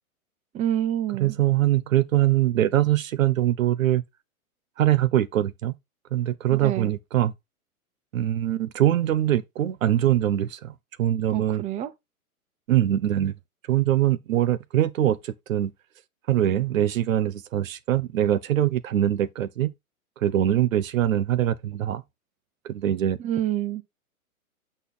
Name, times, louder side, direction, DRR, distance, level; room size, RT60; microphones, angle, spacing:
voice 1, 0.5-1.4 6.5-6.9 11.3-11.9 23.2-23.8, right 11 dB, 15° right, 0.7 m, -27 dB
voice 2, 1.2-4.0 4.8-5.7 6.1-7.3 8.1-10.7 11.0-11.6 12.7-13.3 13.7-15.7 16.3-19.7 20.2-22.0 22.6-23.2, right 12 dB, 65° right, 1.0 m, -23 dB
8.0 x 4.2 x 3.8 m
hypercardioid pair, 120°, 43 cm